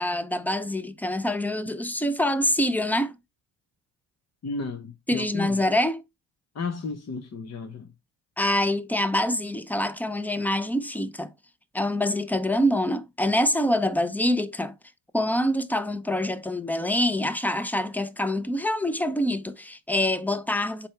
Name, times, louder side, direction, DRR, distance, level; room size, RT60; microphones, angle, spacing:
voice 1, 0.0-3.1 5.1-6.0 8.4-11.3 11.7-14.7 15.1-20.9, left 1 dB, 5° left, 0.7 m, -25 dB
voice 2, 4.4-5.6 6.5-7.9, left 4 dB, 35° left, 1.0 m, -33 dB
7.2 x 4.5 x 3.3 m
cardioid pair, 90°, 44 cm